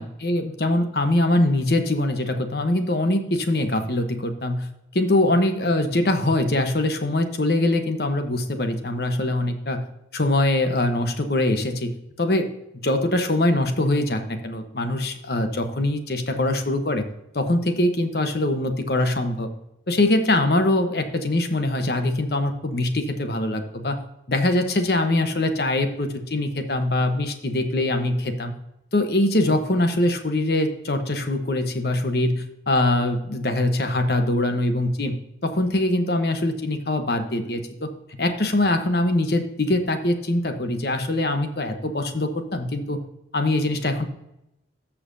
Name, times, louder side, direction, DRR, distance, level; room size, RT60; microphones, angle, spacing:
voice 1, 0.0-4.7 4.9-9.9 10.1-11.9 12.2-12.5 12.8-17.0 17.3-19.5 19.9-24.0 24.3-28.5 28.9-35.1 35.4-43.0 43.3-44.0, left 1 dB, 60° left, 7 dB, 1.1 m, -23 dB
14.5 x 5.8 x 2.7 m, 0.86 s
head